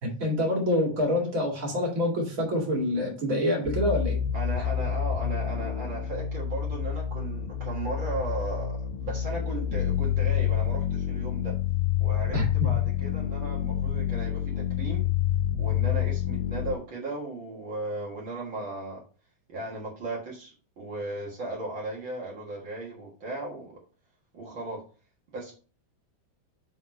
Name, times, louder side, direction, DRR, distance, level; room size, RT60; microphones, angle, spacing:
voice 1, 0.0-4.2 12.3-12.7, left 1 dB, 35° right, 0 dB, 1.3 m, -26 dB
sound 1, 3.7-16.8, left 10 dB, 80° left, 2.7 m, -28 dB
voice 2, 4.3-11.5 12.0-15.0 15.6-19.0 19.5-23.8 24.3-24.8 25.3-25.5, right 2 dB, 90° right, -3 dB, 1.0 m, -36 dB
7.1 x 4.2 x 4.3 m, 0.38 s
omnidirectional pair, 4.8 m